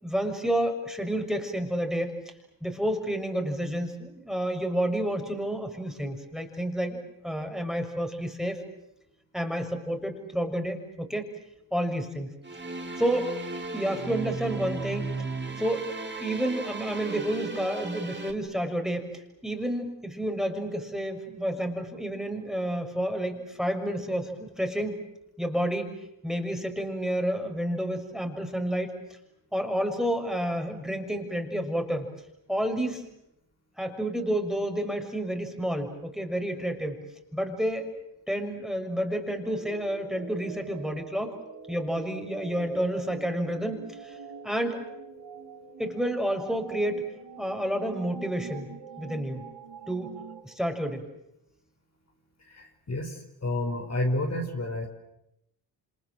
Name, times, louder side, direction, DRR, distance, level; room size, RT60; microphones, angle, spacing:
voice 1, 0.0-2.1 2.6-8.6 9.3-11.3 11.7-12.3 13.0-13.3 13.7-15.1 15.6-15.9 16.2-19.1 19.4-25.0 25.4-25.9 26.2-28.9 29.5-32.1 32.5-33.0 33.8-37.0 37.3-37.9 38.3-41.4 41.7-44.2 44.4-44.9 45.8-47.0 47.4-48.7 49.0-49.4 49.9-50.2 50.4-51.0, right 1 dB, ahead, 5 dB, 6.2 m, -30 dB
sound 1, 12.4-18.3, right 3 dB, 25° right, 3.9 m, -35 dB
sound 2, 39.4-50.4, right 5 dB, 60° right, 3.6 m, -44 dB
voice 2, 52.4-54.9, left 1 dB, 35° left, 3 dB, 5.2 m, -30 dB
28.5 x 26.5 x 7.7 m, 0.83 s
supercardioid pair, 55°, 45 cm